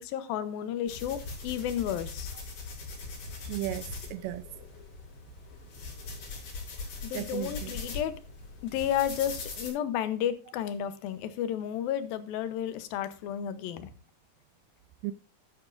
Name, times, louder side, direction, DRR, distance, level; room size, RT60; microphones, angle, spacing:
voice 1, 0.0-2.3 7.0-8.2 8.6-13.9, left 10 dB, 85° left, 2.8 m, -32 dB
sound 1, 0.9-9.7, left 3 dB, 65° left, 6.7 m, -41 dB
voice 2, 3.4-4.5 7.1-7.7 15.0-15.1, right 15 dB, 80° right, 2.1 m, -35 dB
12.5 x 10.5 x 2.6 m
omnidirectional pair, 4.1 m